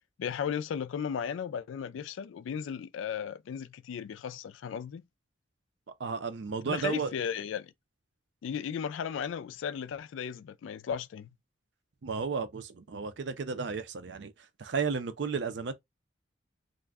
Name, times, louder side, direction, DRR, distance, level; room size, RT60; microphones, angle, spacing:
voice 1, 0.2-5.0 6.6-7.7 8.4-11.3, left 7 dB, 90° left, 0.3 m, -35 dB
voice 2, 6.0-7.1 12.0-14.3 14.6-15.7, right 5 dB, 70° right, 0.5 m, -33 dB
2.4 x 2.2 x 3.3 m
head